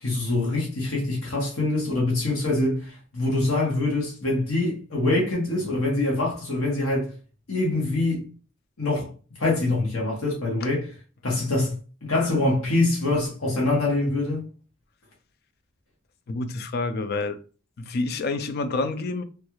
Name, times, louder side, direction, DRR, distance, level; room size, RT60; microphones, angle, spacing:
voice 1, 0.0-7.1 7.5-8.3 8.8-9.1 9.4-10.9 11.2-14.4, left 2 dB, 85° left, 1.2 m, -24 dB
voice 2, 16.3-17.4 17.8-19.2, left 3 dB, 50° left, 0.4 m, -28 dB
3.2 x 2.3 x 3.0 m
head